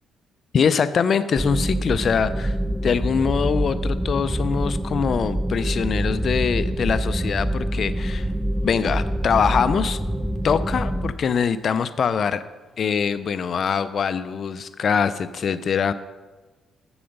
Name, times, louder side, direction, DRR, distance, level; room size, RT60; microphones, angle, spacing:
voice 1, 0.5-2.6 2.8-8.3 8.6-10.0 10.4-12.4 12.8-15.9, left 6 dB, 50° left, 13 dB, 0.4 m, -23 dB
sound 1, 1.4-11.1, right 1 dB, 5° right, 0.5 m, -25 dB
7.8 x 6.9 x 5.3 m, 1.2 s
cardioid pair, 90°, 0 cm